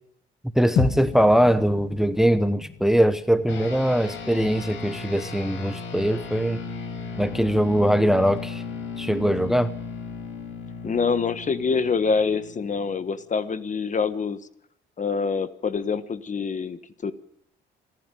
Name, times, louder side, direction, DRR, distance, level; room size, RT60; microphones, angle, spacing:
voice 1, 0.5-6.6 7.2-8.6 9.0-9.7, equal, ahead, 13 dB, 0.9 m, -21 dB
sound 1, 0.8-5.1, left 7 dB, 65° left, 1.7 m, -32 dB
sound 2, 3.5-13.2, left 4 dB, 80° left, 5.4 m, -36 dB
voice 2, 10.8-14.4 15.0-17.1, left 5 dB, 40° left, 13 dB, 1.4 m, -25 dB
26.5 x 11.0 x 9.2 m, 0.73 s
cardioid pair, 90°, 20 cm